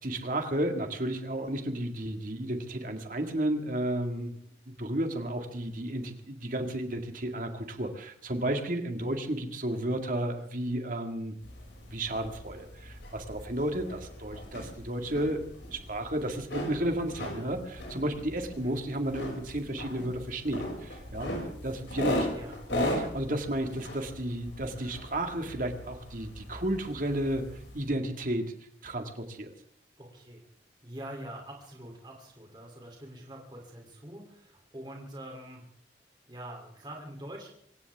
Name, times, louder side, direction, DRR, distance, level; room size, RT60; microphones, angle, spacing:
voice 1, 0.0-4.3 4.7-11.4 11.9-21.3 21.6-22.3 22.7-28.5 28.8-29.5, right 1 dB, 45° right, 5 dB, 2.1 m, -32 dB
sound 1, 11.4-27.9, left 1 dB, 85° left, 6.2 m, -38 dB
voice 2, 22.3-22.6 30.0-30.5 30.8-35.6 36.2-37.5, right 1 dB, 25° right, 0 dB, 3.2 m, -44 dB
25.5 x 16.0 x 3.6 m, 0.66 s
head